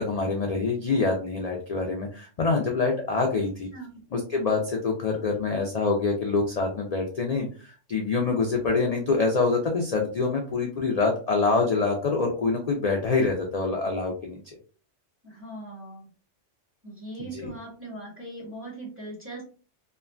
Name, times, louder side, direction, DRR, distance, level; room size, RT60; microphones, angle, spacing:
voice 1, 0.0-3.7 4.1-14.4 17.3-17.5, left 4 dB, 75° left, 1 dB, 0.3 m, -25 dB
voice 2, 3.7-4.0 15.2-16.1 16.8-19.4, right 2 dB, 10° right, -6 dB, 1.3 m, -40 dB
2.9 x 2.2 x 2.3 m, 0.39 s
omnidirectional pair, 1.2 m